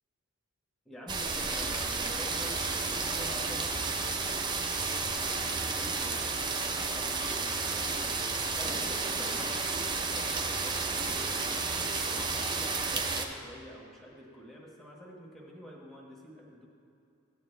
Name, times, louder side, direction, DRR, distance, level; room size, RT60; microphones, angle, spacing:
voice 1, 0.8-4.6 5.0-8.2 8.5-16.6, equal, ahead, -3 dB, 1.2 m, -48 dB
sound 1, 1.1-13.3, right 4 dB, 20° right, 0.6 m, -32 dB
15.5 x 9.2 x 3.3 m, 2.7 s
head